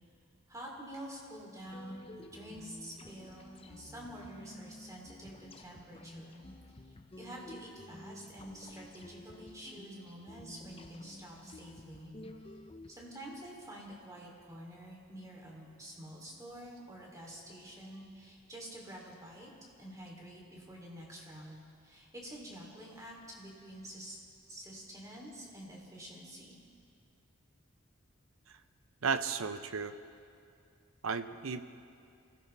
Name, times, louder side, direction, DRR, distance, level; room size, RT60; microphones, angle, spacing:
voice 1, 0.5-2.1 2.3-6.4 6.8-12.1 12.9-19.5 19.8-24.2 24.5-26.6, right 1 dB, 15° right, -3 dB, 3.2 m, -48 dB
sound 1, 1.6-12.9, left 1 dB, 25° left, 0.7 m, -52 dB
voice 2, 29.0-30.0 31.0-31.6, right 5 dB, 90° right, 10 dB, 0.8 m, -34 dB
26.0 x 16.5 x 3.4 m, 2.4 s
head